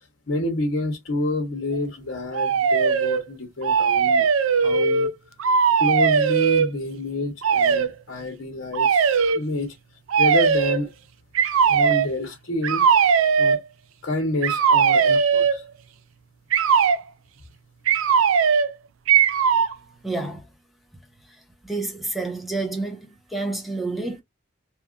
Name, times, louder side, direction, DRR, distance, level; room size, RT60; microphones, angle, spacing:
voice 1, 0.3-4.3 4.6-5.1 5.8-9.1 9.3-9.7 10.2-10.9 11.7-12.8 13.4-13.6 14.0-15.6, left 2 dB, 70° left, 0.8 m, -28 dB
sound 1, 2.3-3.2 3.6-5.1 5.4-6.7 7.4-7.9 8.7-9.4 10.1-10.8 11.4-12.1 12.6-13.6 14.4-15.6 16.5-17.0 17.9-18.7 19.1-19.7, right 6 dB, 90° right, 0.4 m, -19 dB
voice 2, 20.0-20.4 21.7-23.0 23.3-24.2, right 2 dB, ahead, 0.6 m, -28 dB
2.8 x 2.4 x 2.3 m
head